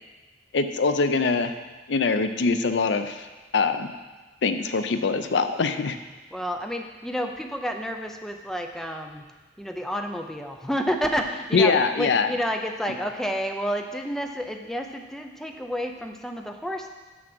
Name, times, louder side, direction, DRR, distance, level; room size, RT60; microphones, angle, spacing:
voice 1, 0.5-1.5 1.9-3.2 3.5-3.9 4.4-6.0 11.5-12.3, left 4 dB, 70° left, 9 dB, 0.5 m, -23 dB
voice 2, 6.3-9.2 9.6-16.9, equal, ahead, 3 dB, 0.5 m, -30 dB
7.1 x 6.2 x 6.1 m, 1.2 s
head